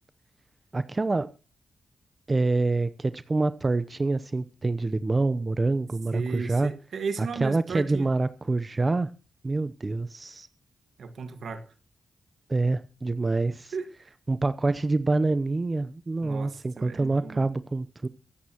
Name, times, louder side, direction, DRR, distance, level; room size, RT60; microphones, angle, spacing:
voice 1, 0.7-1.3 2.3-6.7 7.2-9.1 9.4-10.5 12.5-13.7 14.3-18.1, right 3 dB, 35° right, 0.7 m, -26 dB
voice 2, 6.1-8.1 11.0-11.6 13.7-13.9 16.2-17.5, right 5 dB, 75° right, 1.7 m, -35 dB
23.5 x 8.5 x 3.0 m
supercardioid pair, 50°, 0 cm